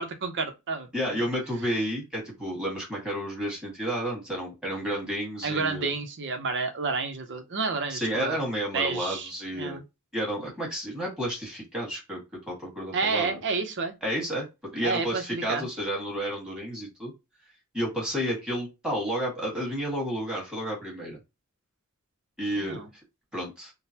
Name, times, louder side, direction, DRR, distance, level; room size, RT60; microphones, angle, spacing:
voice 1, 0.0-1.2 5.4-8.4 8.7-9.3 9.6-9.8 12.9-13.9 14.8-15.7 22.6-22.9, right 4 dB, 55° right, 0.7 m, -30 dB
voice 2, 0.9-5.9 7.9-9.8 10.1-12.2 12.5-13.4 14.0-17.1 17.7-21.2 22.4-22.8 23.3-23.7, equal, 5° right, 1.6 m, -31 dB
3.7 x 2.1 x 2.8 m
head